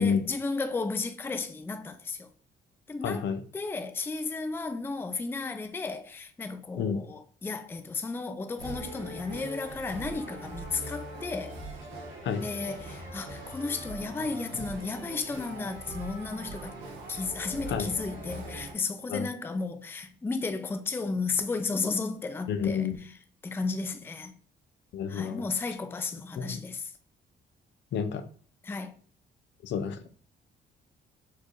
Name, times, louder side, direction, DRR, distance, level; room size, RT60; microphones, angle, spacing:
voice 1, 0.0-2.3 2.9-3.3 3.5-11.6 12.4-16.7 17.1-22.9 23.4-24.4 25.1-26.9 28.6-28.9, left 4 dB, 10° left, 0.4 m, -33 dB
voice 2, 3.0-3.4 6.8-7.0 12.2-12.4 17.7-17.9 19.1-19.3 22.5-23.0 24.9-25.5 26.4-26.6 27.9-28.2 29.6-30.0, left 6 dB, 65° left, 0.5 m, -29 dB
sound 1, 8.6-18.7, right 2 dB, 90° right, 1.2 m, -41 dB
4.4 x 2.5 x 3.0 m
cardioid pair, 90°, 20 cm